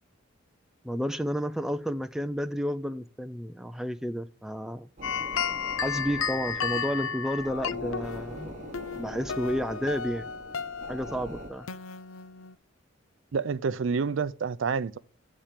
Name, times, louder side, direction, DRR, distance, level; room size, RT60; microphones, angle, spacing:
voice 1, 0.8-4.9 5.8-8.5 8.9-10.3 10.9-11.7, equal, 5° right, 0.3 m, -31 dB
sound 1, 5.0-12.5, left 6 dB, 80° left, 0.6 m, -34 dB
sound 2, 5.0-11.5, right 2 dB, 35° right, 1.1 m, -44 dB
voice 2, 13.3-15.0, right 5 dB, 70° right, 0.4 m, -28 dB
7.4 x 4.4 x 6.6 m
head